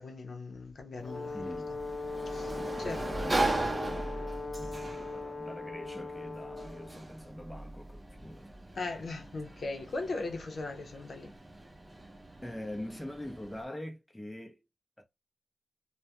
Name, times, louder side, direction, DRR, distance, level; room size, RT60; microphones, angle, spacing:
voice 1, 0.0-1.5 2.3-3.1 8.8-11.3, left 3 dB, 80° left, 0.6 m, -39 dB
Brass instrument, 1.0-7.0, left 3 dB, 40° left, 0.3 m, -39 dB
Sliding door, 1.0-13.6, right 2 dB, 25° right, 0.6 m, -38 dB
voice 2, 1.3-1.7 3.8-4.3 4.6-8.5 12.4-14.6 15.0-15.1, left 1 dB, 10° left, 0.7 m, -43 dB
2.3 x 2.1 x 2.8 m
wide cardioid pair, 90°, 0 cm